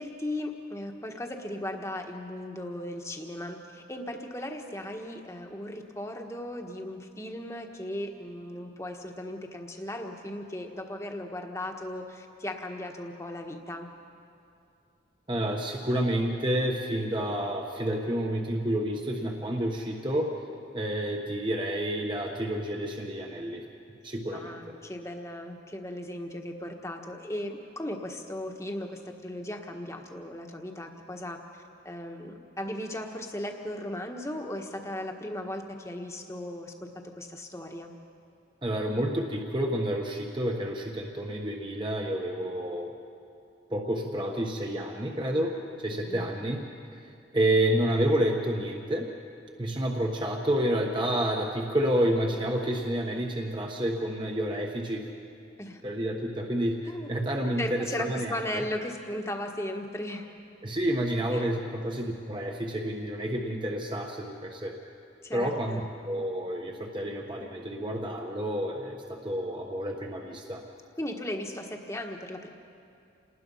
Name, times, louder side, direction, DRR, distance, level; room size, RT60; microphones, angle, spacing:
voice 1, 0.0-13.9 24.3-31.4 31.8-36.7 37.2-37.9 46.1-46.3 55.6-55.8 56.9-57.1 57.6-60.3 61.3-61.5 65.2-65.9 71.0-72.5, left 1 dB, 15° left, 3 dB, 1.4 m, -37 dB
voice 2, 15.3-20.3 20.7-23.6 24.0-24.6 38.6-42.9 43.7-45.5 45.8-46.6 46.9-47.0 47.3-49.1 49.6-55.0 55.8-58.6 60.6-64.7 65.3-65.8 66.0-70.6, right 1 dB, 25° right, 1 dB, 1.2 m, -29 dB
28.0 x 19.5 x 5.6 m, 2.5 s
head